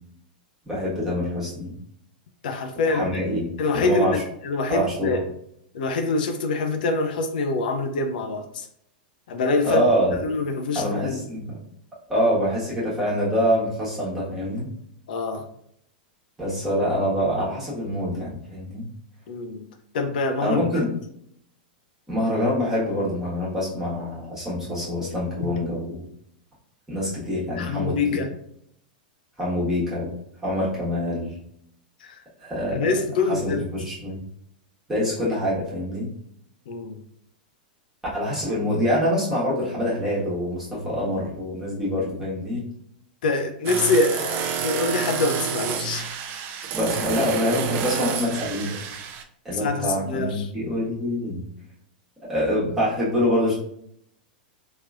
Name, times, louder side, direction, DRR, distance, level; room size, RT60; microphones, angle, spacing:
voice 1, 0.6-1.7 2.9-3.5 3.7-4.2 4.7-5.2 9.6-10.2 10.7-11.6 12.1-14.7 16.4-18.9 20.4-20.9 22.1-26.0 26.9-28.2 29.4-30.1 30.4-31.3 32.4-32.8 33.3-34.2 34.9-36.1 38.1-42.7 46.7-48.7 49.4-51.5 52.3-53.5, equal, 10° right, -8 dB, 1.4 m, -25 dB
voice 2, 2.4-3.2 3.6-4.1 4.4-5.2 5.7-8.7 9.3-9.8 10.1-11.2 15.1-15.5 19.3-19.7 19.9-20.7 25.4-25.6 27.6-28.3 32.0-32.2 32.7-33.7 36.7-37.0 43.2-46.1 49.5-50.5, left 3 dB, 70° left, 6 dB, 0.5 m, -25 dB
sound 1, 43.6-49.2, right 7 dB, 40° right, 0.4 m, -29 dB
3.0 x 2.9 x 2.5 m, 0.70 s
hypercardioid pair, 105°, 5 cm